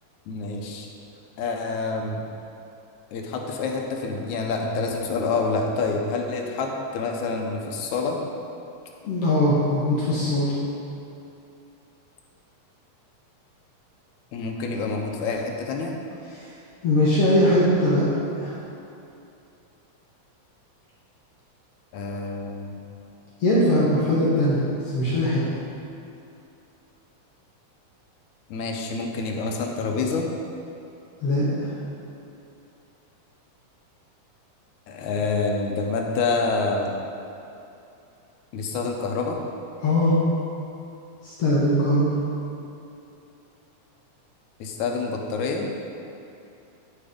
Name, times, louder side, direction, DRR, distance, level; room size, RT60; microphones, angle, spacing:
voice 1, 0.3-0.9 1.4-2.2 3.1-8.2 14.3-15.9 21.9-22.7 28.5-30.3 34.9-36.9 38.5-39.4 44.6-45.7, left 4 dB, 85° left, 1 dB, 2.2 m, -27 dB
voice 2, 9.0-10.6 16.3-16.5 16.8-18.1 18.4-18.6 23.4-25.4 31.2-31.7 39.8-40.2 41.2-42.1, left 1 dB, 60° left, -8 dB, 2.1 m, -21 dB
11.0 x 4.3 x 5.1 m, 2.7 s
omnidirectional pair, 3.3 m